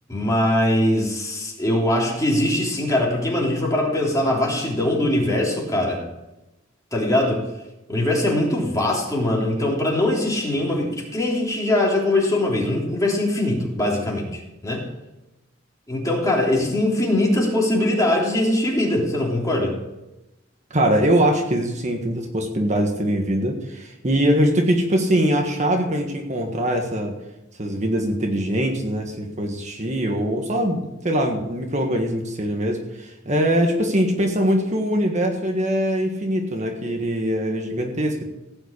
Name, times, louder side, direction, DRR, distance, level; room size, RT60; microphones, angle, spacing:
voice 1, 0.1-6.0 6.9-7.4 7.9-14.8 15.9-19.8, left 1 dB, 15° left, -2 dB, 3.2 m, -22 dB
voice 2, 20.7-27.2 27.6-38.3, equal, 35° right, 2 dB, 1.5 m, -22 dB
16.5 x 5.8 x 8.5 m, 0.96 s
head